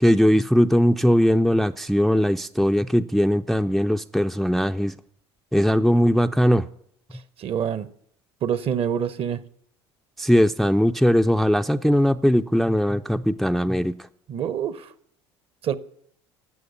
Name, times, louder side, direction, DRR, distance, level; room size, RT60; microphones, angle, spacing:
voice 1, 0.0-4.9 5.5-6.7 10.2-13.9, equal, ahead, 0.4 m, -20 dB
voice 2, 7.4-7.9 8.4-9.4 14.3-14.8 15.6-15.8, right 8 dB, 40° right, 0.9 m, -26 dB
12.5 x 7.9 x 9.4 m
hypercardioid pair, 70°, 14 cm